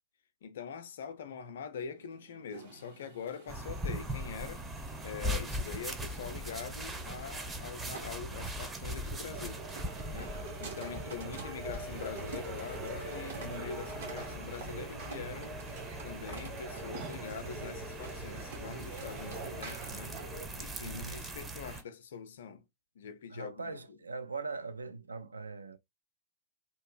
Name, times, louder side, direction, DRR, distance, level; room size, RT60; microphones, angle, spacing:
voice 1, 0.4-4.6 5.0-9.7 10.1-15.6 16.0-20.2 20.5-22.6 23.0-24.0, left 6 dB, 60° left, 0.4 m, -43 dB
sound 1, 1.9-21.5, right 5 dB, 65° right, 1.0 m, -51 dB
sound 2, 3.5-21.8, right 1 dB, 15° right, 0.6 m, -41 dB
sound 3, 9.3-20.5, right 1 dB, 50° right, 1.3 m, -44 dB
voice 2, 20.8-21.2 23.3-25.8, right 4 dB, 80° right, 0.3 m, -41 dB
2.8 x 2.4 x 2.2 m
figure-of-eight pair, 90°, 0 cm